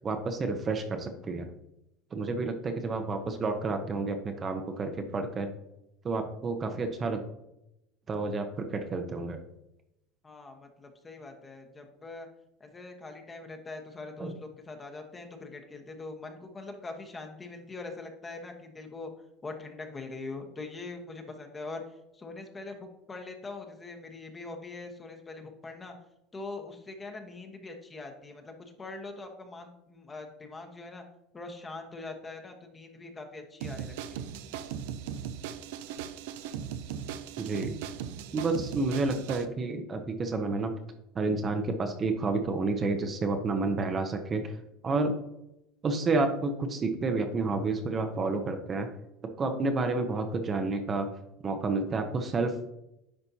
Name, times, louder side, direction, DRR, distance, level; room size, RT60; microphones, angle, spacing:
voice 1, 0.0-1.5 2.1-5.5 6.0-7.2 8.1-9.4 14.2-14.4 37.4-37.9 38.3-40.8 41.1-44.6 44.8-45.2 45.8-48.9 49.4-51.1 51.4-52.5, right 3 dB, 30° right, 6 dB, 0.7 m, -30 dB
voice 2, 10.2-12.3 12.6-19.1 19.4-21.8 22.1-25.9 26.3-31.0 31.3-34.3, left 3 dB, 20° left, 4 dB, 1.1 m, -42 dB
sound 1, 33.6-39.5, right 9 dB, 80° right, 0.5 m, -38 dB
9.8 x 4.3 x 2.8 m, 0.85 s
supercardioid pair, 115°, 0 cm